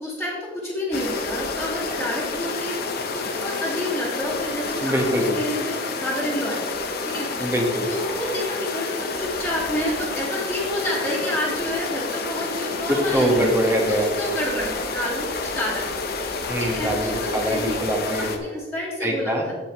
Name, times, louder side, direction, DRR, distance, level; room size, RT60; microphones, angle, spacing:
voice 1, 0.0-6.8 7.1-7.5 7.9-13.5 13.9-15.3 15.5-16.0 16.3-17.8 18.3-19.5, equal, 5° left, -11 dB, 2.3 m, -29 dB
sound 1, 0.9-18.4, left 4 dB, 55° left, 1.0 m, -29 dB
voice 2, 4.8-5.4 7.4-7.9 12.9-14.1 16.5-18.3 19.0-19.5, equal, 15° right, 0 dB, 1.6 m, -23 dB
16.0 x 5.7 x 3.2 m, 1.3 s
head